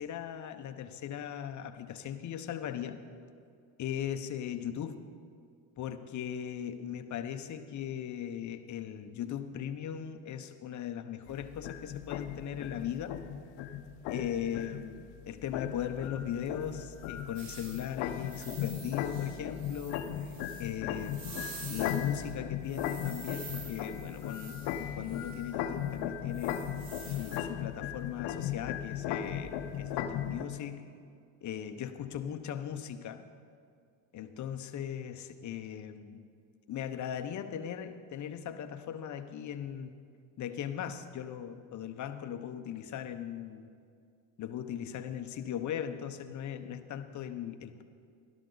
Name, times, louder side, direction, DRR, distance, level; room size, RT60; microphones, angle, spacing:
voice 1, 0.0-3.0 3.8-5.0 5.8-13.1 14.1-20.3 20.6-21.2 21.7-26.6 27.1-30.9 31.4-33.3 34.1-36.2 36.7-40.0 40.4-43.7 44.4-47.8, left 9 dB, 40° left, 8 dB, 0.9 m, -38 dB
sound 1, 11.3-30.4, left 10 dB, 65° left, 1.0 m, -37 dB
sound 2, 17.3-22.3 22.7-25.5 26.3-27.4, right 4 dB, 90° right, 2.5 m, -49 dB
17.5 x 12.0 x 4.0 m, 2.3 s
supercardioid pair, 100°, 44 cm